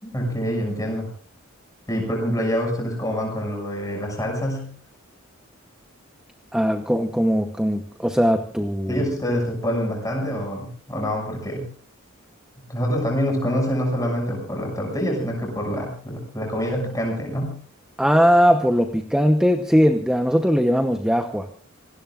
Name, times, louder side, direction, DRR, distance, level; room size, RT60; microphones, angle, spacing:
voice 1, 0.0-1.1 1.9-4.7 8.9-11.7 12.7-17.5, equal, 15° left, 1 dB, 6.6 m, -26 dB
voice 2, 6.5-9.0 18.0-21.5, equal, 5° right, 5 dB, 0.9 m, -19 dB
27.0 x 20.0 x 2.5 m, 0.44 s
head